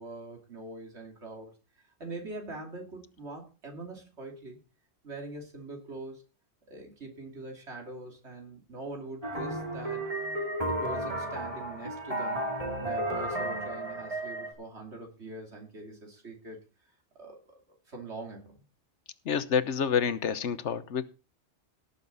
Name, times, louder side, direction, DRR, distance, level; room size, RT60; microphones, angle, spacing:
voice 1, 0.0-1.5 2.0-4.6 5.0-6.2 6.7-10.1 10.6-12.5 12.8-16.6 17.2-17.6 17.9-18.6, right 2 dB, 75° right, 1 dB, 3.1 m, -43 dB
sound 1, 9.2-14.5, right 1 dB, 30° right, 2.8 m, -33 dB
voice 2, 19.2-21.0, left 7 dB, 90° left, 13 dB, 1.3 m, -28 dB
18.0 x 7.2 x 4.0 m, 0.34 s
omnidirectional pair, 1.2 m